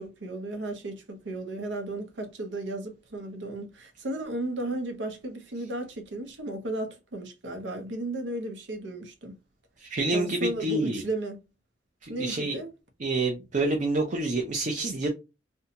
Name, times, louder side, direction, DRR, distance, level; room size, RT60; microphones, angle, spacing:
voice 1, 0.0-9.3 10.1-11.4 12.1-12.7, right 2 dB, 85° right, 0.7 m, -34 dB
voice 2, 9.8-11.0 12.0-12.6 13.0-15.1, right 2 dB, 40° right, 0.5 m, -28 dB
2.6 x 2.2 x 2.8 m
head